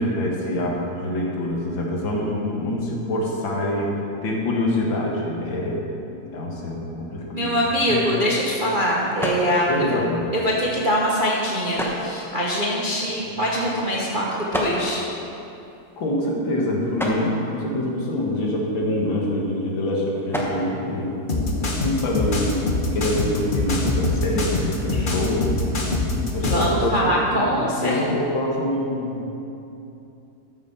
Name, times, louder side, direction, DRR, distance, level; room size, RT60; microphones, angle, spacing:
voice 1, 0.0-3.9 4.2-6.0 6.3-7.6 7.9-8.0 9.7-10.2 13.2-13.4 16.0-22.7 22.9-25.5 26.0-29.2, left 1 dB, 65° left, -1 dB, 2.2 m, -25 dB
voice 2, 7.3-9.7 10.3-15.0 26.5-28.0, equal, 35° right, -4 dB, 0.8 m, -23 dB
sound 1, 7.6-21.9, equal, ahead, 0.5 m, -35 dB
sound 2, 21.3-26.7, left 2 dB, 40° left, 0.7 m, -24 dB
13.0 x 6.4 x 5.7 m, 2.8 s
omnidirectional pair, 2.4 m